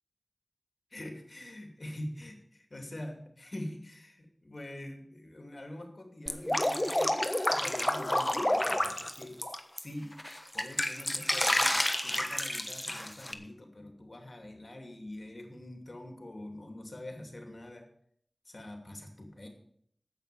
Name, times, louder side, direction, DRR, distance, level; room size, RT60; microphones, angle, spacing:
voice 1, 0.9-9.4 9.8-10.1 10.5-17.9 18.4-19.5, left 1 dB, 55° left, 4 dB, 2.7 m, -44 dB
Drip, 6.3-9.8 10.2-13.3, left 1 dB, 20° left, 1.2 m, -29 dB
9.1 x 8.1 x 8.6 m, 0.68 s
wide cardioid pair, 40°, 0 cm